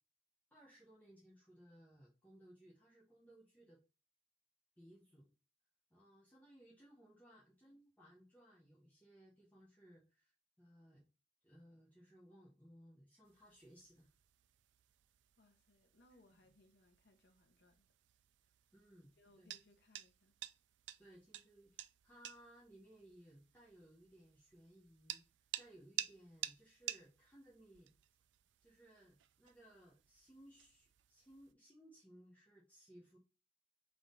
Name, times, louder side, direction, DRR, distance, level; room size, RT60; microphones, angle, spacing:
voice 1, 0.5-3.8 4.8-5.3 5.9-11.0 11.4-14.1 18.7-19.5 21.0-27.9 28.6-33.2, right 1 dB, 10° left, 1.0 m, -63 dB
sound 1, 13.2-31.5, right 13 dB, 90° right, 0.3 m, -52 dB
voice 2, 15.4-17.9 18.4-18.6 19.2-20.4, left 1 dB, 75° left, 0.9 m, -69 dB
3.6 x 3.4 x 4.0 m
head